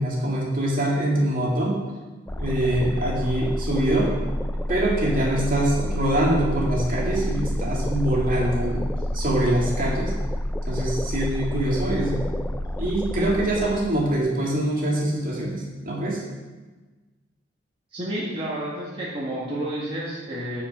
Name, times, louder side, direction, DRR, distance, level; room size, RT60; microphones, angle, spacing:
voice 1, 0.0-1.8 2.4-4.1 4.7-10.2 10.7-12.3 12.8-16.2, right 1 dB, 50° right, -3 dB, 2.1 m, -24 dB
sound 1, 2.3-14.2, left 1 dB, 10° left, 0.3 m, -28 dB
voice 2, 17.9-20.6, right 1 dB, 30° right, -7 dB, 1.7 m, -30 dB
7.4 x 6.9 x 5.5 m, 1.2 s
head